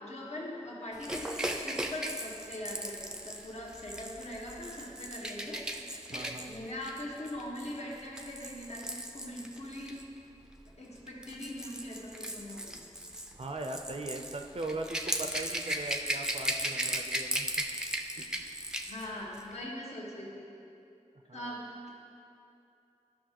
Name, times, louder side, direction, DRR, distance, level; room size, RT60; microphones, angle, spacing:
voice 1, 0.0-5.6 6.1-10.0 10.8-12.8 18.8-20.5 21.3-21.9, left 1 dB, 60° left, -4 dB, 1.4 m, -41 dB
Rattle / Rattle (instrument), 1.0-10.0 11.0-19.1 19.3-19.5, right 1 dB, 5° right, 0.5 m, -37 dB
voice 2, 6.1-6.6 13.3-17.5 18.2-18.3 21.3-21.6, right 2 dB, 50° right, 4 dB, 0.5 m, -39 dB
12.5 x 5.7 x 2.9 m, 2.7 s
wide cardioid pair, 60°, 13 cm